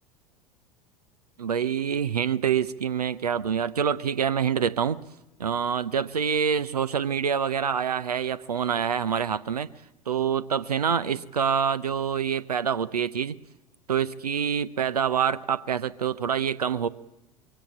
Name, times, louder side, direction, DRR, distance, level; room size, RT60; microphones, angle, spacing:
voice 1, 1.4-5.0 5.4-9.7 10.1-13.4 13.9-16.9, right 7 dB, 80° right, 14 dB, 0.6 m, -26 dB
22.5 x 16.5 x 8.5 m, 0.97 s
figure-of-eight pair, 75°, 20 cm